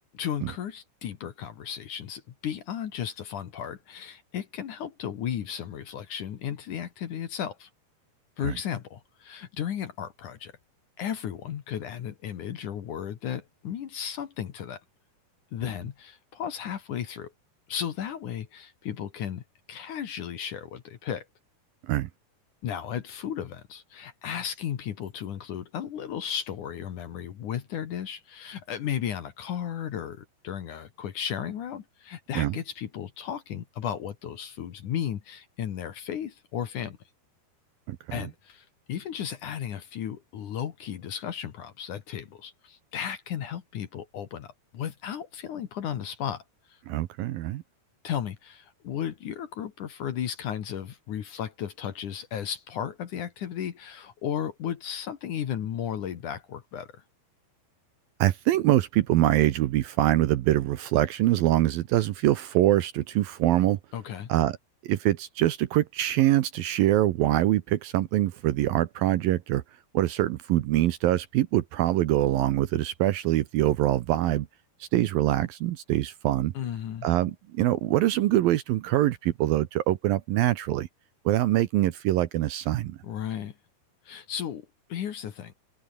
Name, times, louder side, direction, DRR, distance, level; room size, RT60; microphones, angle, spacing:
voice 1, 0.1-7.7 8.4-10.5 11.0-14.8 15.5-17.3 17.7-21.3 22.6-37.0 38.1-46.4 46.7-46.8 48.0-57.0 63.9-64.3 76.5-77.1 83.0-83.5 84.0-85.5, left 9 dB, 55° left, 2.6 m, -34 dB
voice 2, 37.9-38.2 46.9-47.6 58.2-63.8 64.3-64.6 64.8-69.6 69.9-74.5 74.8-76.5 77.0-80.9 81.3-83.0, right 14 dB, 70° right, 2.4 m, -24 dB
open air
omnidirectional pair, 4.9 m